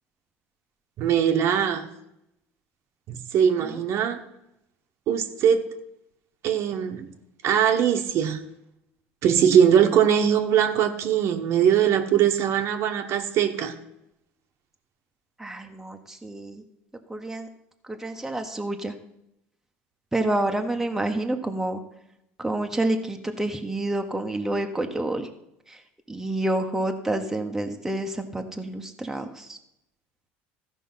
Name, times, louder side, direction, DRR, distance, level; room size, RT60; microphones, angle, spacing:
voice 1, 1.0-1.9 3.1-4.2 5.1-5.7 6.4-7.1 7.4-8.4 9.2-13.7, right 8 dB, 55° right, 6 dB, 1.2 m, -21 dB
voice 2, 15.4-16.6 17.1-17.5 17.8-19.0 20.1-21.8 22.4-25.3 25.7-25.8 26.1-29.6, right 1 dB, 5° right, 4 dB, 1.1 m, -28 dB
14.0 x 5.4 x 5.6 m, 0.82 s
supercardioid pair, 105°, 5 cm